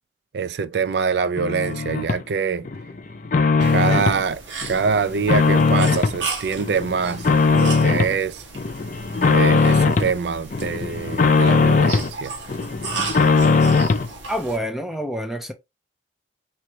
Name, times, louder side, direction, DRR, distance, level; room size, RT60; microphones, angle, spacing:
voice 1, 0.3-2.7 3.7-7.3 7.6-8.4 9.3-12.4, right 5 dB, 60° right, 0.4 m, -24 dB
sound 1, 1.4-2.2 2.7-4.2 4.6-6.2 6.6-8.2 8.6-10.1 10.5-12.1 12.5-14.1, left 4 dB, 45° left, 0.5 m, -19 dB
sound 2, 3.6-14.6, right 4 dB, 80° right, 1.3 m, -35 dB
voice 2, 14.3-15.5, equal, ahead, 0.7 m, -27 dB
3.2 x 3.0 x 4.6 m
head